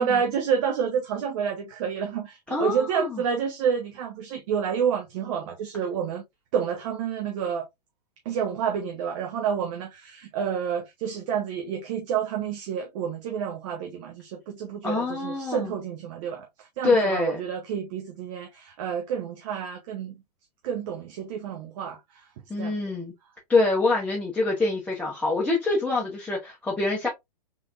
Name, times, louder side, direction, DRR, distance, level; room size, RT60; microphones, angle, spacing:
voice 1, 0.0-6.2 6.5-7.7 8.2-20.2 20.6-22.3 22.6-22.8, right 7 dB, 50° right, 0.9 m, -29 dB
voice 2, 2.5-3.2 14.8-15.7 16.8-17.4 22.5-23.1 23.5-27.1, left 3 dB, 5° left, 1.1 m, -25 dB
3.6 x 3.4 x 2.4 m
hypercardioid pair, 110°, 21 cm